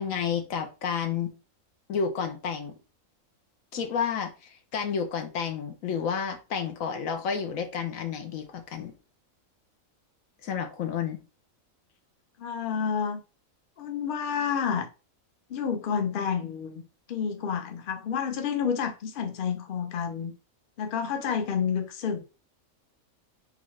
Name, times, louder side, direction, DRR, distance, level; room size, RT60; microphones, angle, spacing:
voice 1, 0.0-1.3 1.9-2.7 3.7-8.9 10.4-11.2, left 6 dB, 75° left, 1.2 m, -30 dB
voice 2, 12.4-13.2 13.8-14.9 15.5-16.8 17.1-20.3 20.8-22.2, left 7 dB, 50° left, 0.7 m, -29 dB
3.9 x 3.5 x 3.2 m
omnidirectional pair, 1.4 m